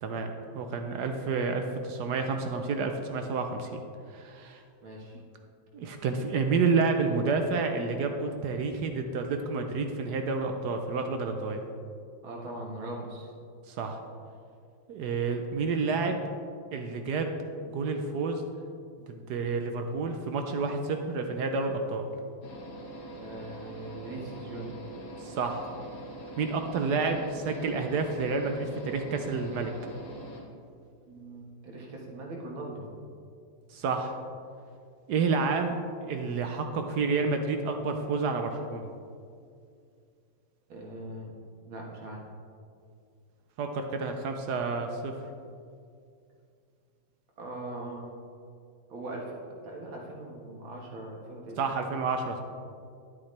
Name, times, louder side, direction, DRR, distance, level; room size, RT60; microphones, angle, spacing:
voice 1, 0.0-3.8 4.1-4.6 5.7-11.6 13.7-14.0 14.9-16.2 16.7-17.3 17.6-18.4 19.1-22.1 25.2-25.7 26.4-29.7 33.7-34.2 35.1-38.9 43.6-45.2 51.6-52.4, right 4 dB, 70° right, 5 dB, 1.1 m, -29 dB
voice 2, 4.8-5.2 12.2-13.3 23.1-24.8 31.1-32.9 40.7-41.4 41.6-42.2 47.4-48.1 48.9-51.8, right 1 dB, 85° right, -1 dB, 2.4 m, -40 dB
sound 1, 22.4-30.4, right 1 dB, 80° left, 2.2 m, -43 dB
11.0 x 9.5 x 3.3 m, 2.4 s
omnidirectional pair, 2.2 m